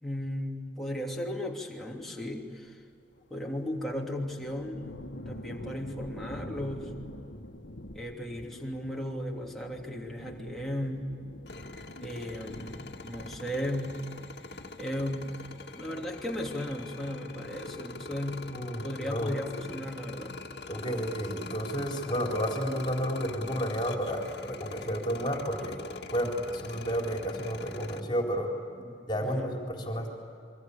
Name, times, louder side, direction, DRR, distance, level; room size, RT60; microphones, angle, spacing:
voice 1, 0.0-2.8 3.3-7.0 7.9-11.2 12.0-14.1 14.5-15.4 15.8-20.5 26.0-26.1 28.8-29.5, left 1 dB, ahead, -2 dB, 3.0 m, -36 dB
sound 1, 3.1-15.9 16.2-16.9, left 1 dB, 85° left, 1.7 m, -46 dB
sound 2, 11.5-28.0, left 3 dB, 60° left, 2.1 m, -43 dB
voice 2, 18.5-19.3 20.7-25.8 26.1-28.5 29.1-30.1, equal, 25° left, 1 dB, 4.0 m, -31 dB
28.0 x 24.0 x 8.5 m, 2.4 s
head